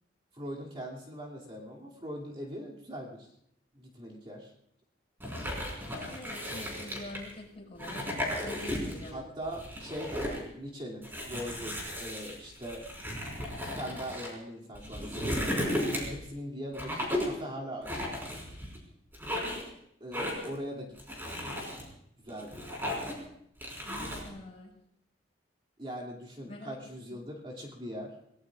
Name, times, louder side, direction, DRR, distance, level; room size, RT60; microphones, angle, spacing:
voice 1, 0.3-3.3 3.7-4.5 9.1-12.9 13.6-18.1 20.0-21.6 22.2-22.6 25.8-28.1, equal, 30° right, -4 dB, 2.8 m, -41 dB
sound 1, 5.2-7.3 7.7-9.1 9.4-10.4 11.0-14.3 14.7-16.3 16.7-17.4 17.8-18.8 19.1-19.7 20.1-20.6 21.0-21.8 22.3-23.2 23.6-24.3, left 1 dB, 15° right, 4.8 m, -35 dB
voice 2, 5.9-8.0 8.4-9.3 23.8-24.8 26.5-26.8 27.1-27.2, left 1 dB, 35° left, -2 dB, 6.1 m, -45 dB
27.5 x 18.5 x 2.5 m, 0.73 s
head